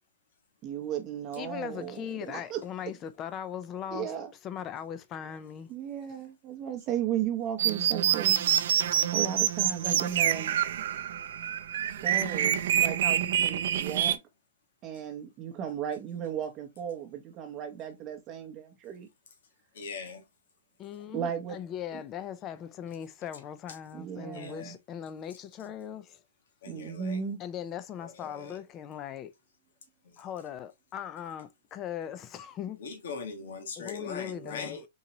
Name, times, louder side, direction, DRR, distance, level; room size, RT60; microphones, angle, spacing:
voice 1, 0.6-2.0 2.3-2.6 3.9-4.3 5.7-8.5 9.1-10.6 12.0-14.2 14.8-19.1 21.1-21.6 21.9-22.0 23.9-24.7 26.7-27.4, right 9 dB, 25° right, 0.7 m, -35 dB
voice 2, 1.4-4.1 4.4-5.7 20.8-26.2 27.4-29.3 30.2-32.8 33.8-34.9, left 9 dB, 20° left, 0.4 m, -39 dB
sound 1, 7.6-14.2, right 10 dB, 60° right, 0.4 m, -27 dB
voice 3, 19.7-20.2 24.3-24.7 26.6-27.2 28.0-28.6 32.8-34.8, left 5 dB, 70° left, 1.2 m, -40 dB
3.9 x 2.8 x 2.9 m
hypercardioid pair, 160°, 0 cm